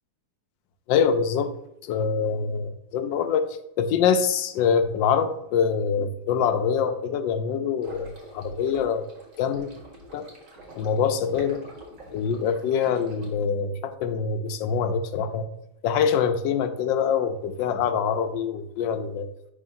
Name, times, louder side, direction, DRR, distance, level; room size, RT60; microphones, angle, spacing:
voice 1, 0.9-1.5 1.8-3.4 3.8-9.0 9.4-9.7 10.1-10.3 10.8-11.6 12.1-15.5 15.8-19.3, left 7 dB, 80° left, 9 dB, 1.3 m, -24 dB
sound 1, 7.8-13.3, right 1 dB, 45° right, 1.9 m, -47 dB
10.5 x 3.7 x 2.6 m, 0.84 s
omnidirectional pair, 2.0 m